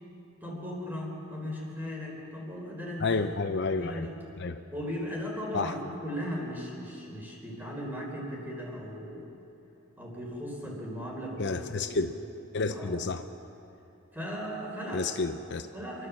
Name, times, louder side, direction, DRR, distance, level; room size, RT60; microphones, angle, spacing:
voice 1, 0.4-3.2 3.8-4.1 4.7-9.3 10.0-12.2 12.7-13.0 14.1-15.1 15.7-16.1, equal, 10° right, -2 dB, 4.4 m, -37 dB
voice 2, 3.0-4.1 4.4-4.6 5.5-5.8 11.4-12.1 12.5-13.3 14.9-15.7, left 3 dB, 55° left, 8 dB, 0.6 m, -30 dB
27.5 x 12.5 x 7.3 m, 2.8 s
head